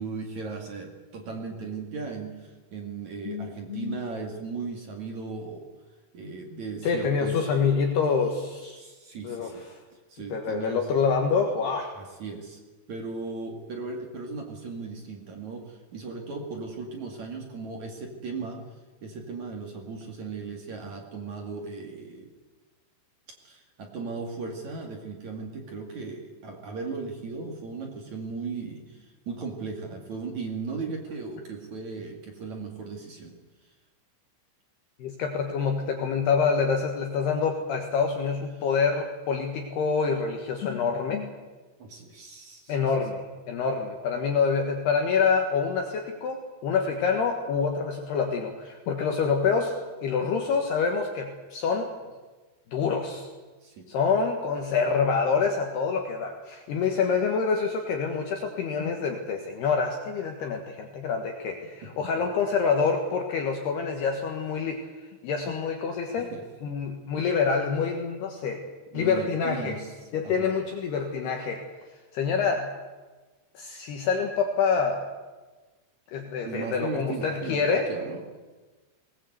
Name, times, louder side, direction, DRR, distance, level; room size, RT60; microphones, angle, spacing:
voice 1, 0.0-5.6 6.1-7.4 8.7-9.6 10.1-10.9 11.9-12.6 12.9-18.6 19.0-22.3 23.4-33.4 40.1-40.2 41.8-42.9 53.6-53.9 61.8-61.9 66.1-66.4 68.9-69.9 70.2-70.5 76.4-78.2, right 4 dB, 45° right, 2 dB, 2.9 m, -37 dB
voice 2, 3.2-4.0 6.8-8.8 9.2-9.8 10.3-11.9 35.0-41.3 42.7-51.9 52.7-53.3 53.9-64.8 65.2-66.3 66.6-68.6 68.9-69.8 70.1-71.6 72.1-72.7 73.5-75.1 76.1-77.9, left 5 dB, 65° left, 3 dB, 3.1 m, -26 dB
20.0 x 20.0 x 8.1 m, 1.3 s
omnidirectional pair, 5.7 m